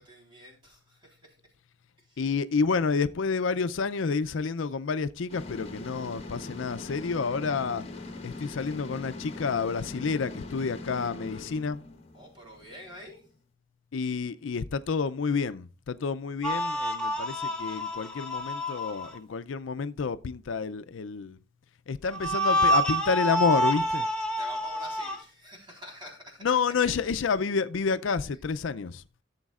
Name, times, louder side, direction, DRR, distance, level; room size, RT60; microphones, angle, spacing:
voice 1, 0.0-1.4 2.0-2.2 12.1-13.2 24.4-26.5 26.8-26.9, equal, 25° right, 3.8 m, -46 dB
voice 2, 2.2-7.9 8.2-11.8 13.9-21.4 21.9-24.1 26.4-29.0, left 5 dB, 75° left, 0.5 m, -29 dB
sound 1, 5.3-13.3, left 2 dB, 30° left, 1.4 m, -41 dB
sound 2, 16.4-19.2 22.1-25.2, equal, 5° left, 1.0 m, -28 dB
15.5 x 7.2 x 2.4 m
head